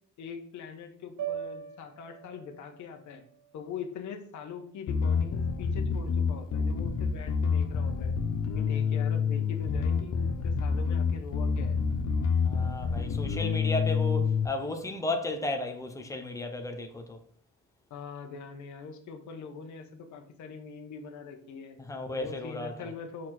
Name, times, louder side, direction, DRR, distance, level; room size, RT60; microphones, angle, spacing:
voice 1, 0.2-3.2 3.5-8.2 8.5-11.8 17.9-21.8 22.1-23.3, left 6 dB, 75° left, 1.1 m, -43 dB
sound 1, 1.2-5.5, right 9 dB, 90° right, 1.7 m, -43 dB
Bass guitar, 4.9-14.5, left 6 dB, 55° left, 0.8 m, -28 dB
voice 2, 12.4-17.2 21.8-22.9, left 2 dB, 10° left, 0.7 m, -34 dB
6.4 x 4.3 x 4.3 m
cardioid pair, 165°, 29 cm